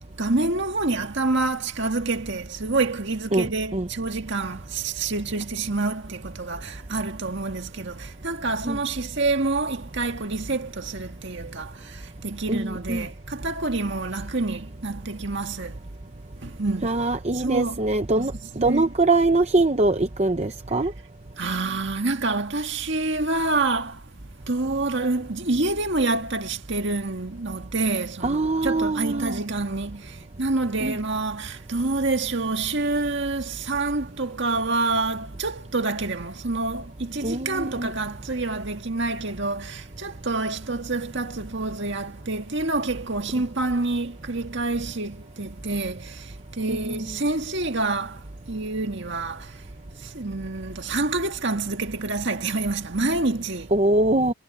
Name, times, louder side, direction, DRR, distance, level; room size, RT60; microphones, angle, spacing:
voice 1, 0.2-15.8 16.4-16.9 17.3-17.9 18.1-18.3 18.6-18.9 21.4-24.0 24.5-49.5 50.0-53.7, right 3 dB, 55° right, 1.9 m, -27 dB
voice 2, 12.5-13.0 16.8-18.3 18.6-20.9 28.2-29.4 30.8-31.0 37.2-37.9 46.7-47.1 53.7-54.3, right 2 dB, 30° right, 0.7 m, -23 dB
head